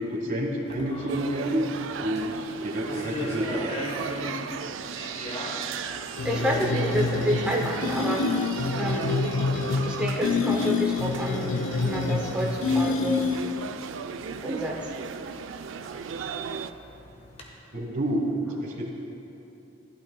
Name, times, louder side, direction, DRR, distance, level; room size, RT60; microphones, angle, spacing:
voice 1, 0.0-1.7 2.0-4.3 17.7-18.9, right 1 dB, 45° right, 1 dB, 1.4 m, -29 dB
sound 1, 0.7-17.5, left 1 dB, 30° left, 1.2 m, -43 dB
sound 2, 1.1-16.7, right 6 dB, 80° right, 0.4 m, -36 dB
sound 3, 6.2-13.7, left 4 dB, 75° left, 0.4 m, -27 dB
voice 2, 6.2-8.3 8.8-9.1 9.8-13.3 14.4-14.9, equal, 5° right, -2 dB, 0.6 m, -29 dB
15.5 x 11.5 x 2.2 m, 3.0 s
head